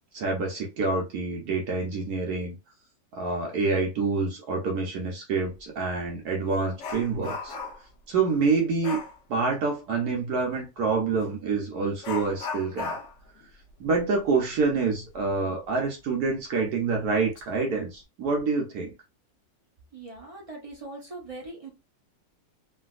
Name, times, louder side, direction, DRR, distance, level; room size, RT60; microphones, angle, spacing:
voice 1, 0.1-2.5 3.1-7.5 8.1-9.0 9.3-13.0 13.8-18.9, right 4 dB, 65° right, 1.1 m, -27 dB
Dog, 5.5-5.6 6.0-8.0 8.8-9.2 11.1-11.3 12.0-15.3 15.6-15.7 16.3-16.4 17.0-17.4 17.8-18.0, left 4 dB, 70° left, 0.6 m, -38 dB
voice 2, 19.9-21.7, right 2 dB, 40° right, 0.5 m, -41 dB
3.2 x 2.6 x 2.3 m
omnidirectional pair, 2.0 m